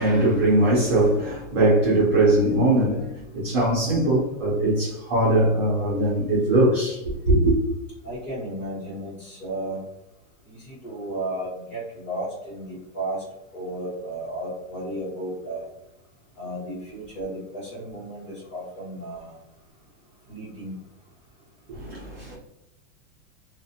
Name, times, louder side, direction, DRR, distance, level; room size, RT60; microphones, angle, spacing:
voice 1, 0.0-7.5 21.7-22.3, right 1 dB, 20° right, 0.4 m, -21 dB
voice 2, 8.0-9.8 10.5-13.2 13.5-15.7 16.4-19.4 20.3-20.7, right 1 dB, 25° left, 1.2 m, -33 dB
2.4 x 2.1 x 2.6 m
supercardioid pair, 170°, 37 cm